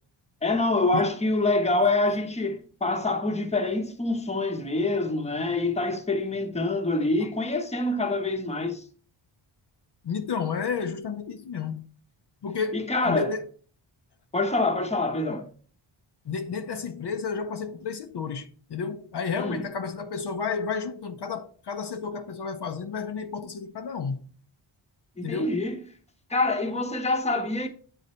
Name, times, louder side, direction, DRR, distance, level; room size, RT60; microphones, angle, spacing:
voice 1, 0.4-8.9 12.7-13.4 14.3-15.5 19.3-19.7 25.2-25.8 26.3-27.7, left 2 dB, 15° left, 0.8 m, -26 dB
voice 2, 10.0-11.9 12.4-13.5 16.3-24.3 25.2-25.6, left 5 dB, 55° left, 0.6 m, -31 dB
8.6 x 3.9 x 4.2 m
wide cardioid pair, 140°, 49 cm